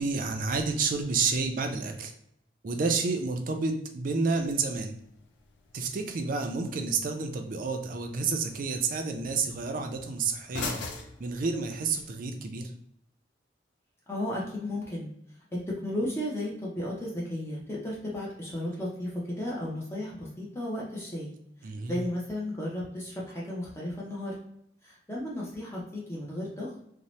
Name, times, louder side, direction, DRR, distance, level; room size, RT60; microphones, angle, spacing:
voice 1, 0.0-2.1 2.6-5.0 5.7-10.8 11.2-12.7 21.6-22.0, right 4 dB, 50° right, 5 dB, 0.4 m, -30 dB
sound 1, 4.1-12.1, left 3 dB, 90° left, 0.4 m, -44 dB
voice 2, 14.1-15.1 15.5-21.3 21.9-24.4 24.8-26.8, left 1 dB, 15° left, -5 dB, 0.6 m, -34 dB
2.7 x 2.0 x 3.0 m, 0.74 s
head